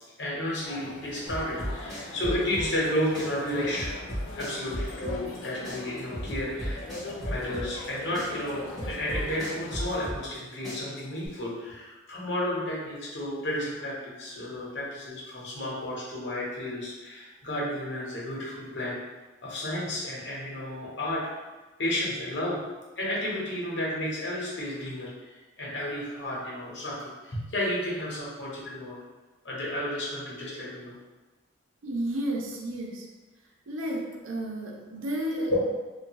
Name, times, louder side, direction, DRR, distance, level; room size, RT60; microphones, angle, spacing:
voice 1, 0.2-4.0 4.4-6.8 7.2-19.0 19.4-21.2 21.8-22.6 23.0-29.0 29.4-31.0 35.3-35.6, left 1 dB, 60° left, -5 dB, 0.9 m, -32 dB
sound 1, 0.6-10.1, left 2 dB, 85° left, 0.4 m, -40 dB
sound 2, 1.3-2.9 3.1-5.4 5.6-7.9 8.1-10.4 10.6-11.3, equal, ahead, 1.1 m, -35 dB
voice 2, 31.8-33.1 33.7-35.7, right 1 dB, 80° right, 0 dB, 0.5 m, -32 dB
2.6 x 2.5 x 2.9 m, 1.2 s
head